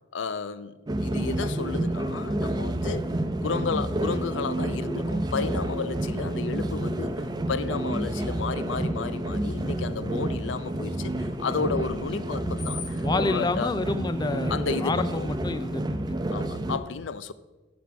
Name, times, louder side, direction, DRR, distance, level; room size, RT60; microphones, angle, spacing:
voice 1, 0.1-3.1 3.4-13.7 14.5-15.3 16.3-17.3, left 5 dB, 80° left, 0.5 m, -32 dB
sound 1, 0.9-16.8, right 1 dB, 20° right, 0.6 m, -29 dB
Screech, 3.8-13.1, left 7 dB, 55° left, 1.0 m, -50 dB
voice 2, 13.0-14.5 14.8-16.2, left 3 dB, 20° left, 0.4 m, -29 dB
11.5 x 6.2 x 5.9 m
head